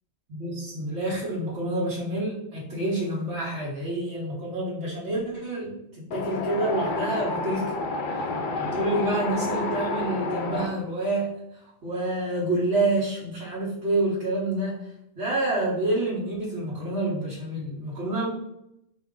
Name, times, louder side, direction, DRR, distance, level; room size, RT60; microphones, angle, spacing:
voice 1, 0.3-5.8 6.1-7.7 8.1-8.2 8.5-11.3 11.6-18.3, right 1 dB, 80° right, -6 dB, 1.3 m, -28 dB
Wind, 6.1-10.7, left 3 dB, 60° left, 0.6 m, -29 dB
4.5 x 2.5 x 3.6 m, 0.82 s
omnidirectional pair, 1.2 m